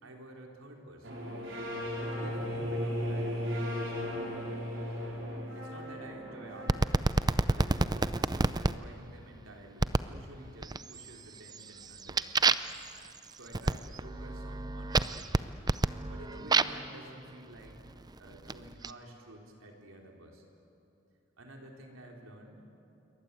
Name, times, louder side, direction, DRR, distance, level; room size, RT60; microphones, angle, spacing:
voice 1, 0.0-1.2 2.0-4.2 5.5-7.2 7.4-12.4 13.3-15.3 16.1-17.8 18.2-20.4 21.4-22.6, right 1 dB, 85° right, 1 dB, 4.2 m, -50 dB
sound 1, 1.0-6.8, equal, 65° right, 5.2 m, -35 dB
sound 2, 6.7-8.7 9.8-10.2 10.6-11.1 11.5-16.9 17.7-18.9, right 3 dB, 20° right, 0.5 m, -29 dB
28.0 x 23.5 x 8.5 m, 2.8 s
head